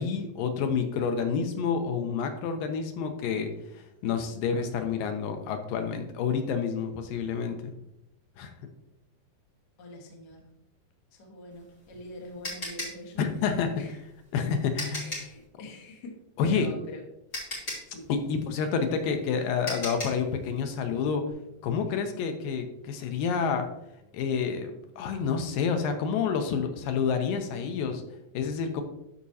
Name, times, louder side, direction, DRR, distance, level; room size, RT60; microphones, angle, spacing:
voice 1, 0.0-7.7 8.4-8.5 13.2-13.7 14.3-15.2 16.4-16.7 18.1-21.2 21.6-23.7 24.1-28.0 28.3-28.8, left 6 dB, 80° left, 6 dB, 2.4 m, -29 dB
voice 2, 9.8-10.4 11.1-13.2 13.8-14.0 14.9-16.1 16.4-17.0 17.8-18.1 21.9-22.0, left 1 dB, 45° left, -1 dB, 1.3 m, -44 dB
sound 1, 11.5-15.4 16.8-16.9 17.3-20.3, left 1 dB, 20° left, 3.1 m, -37 dB
13.0 x 5.1 x 2.8 m, 0.86 s
omnidirectional pair, 4.1 m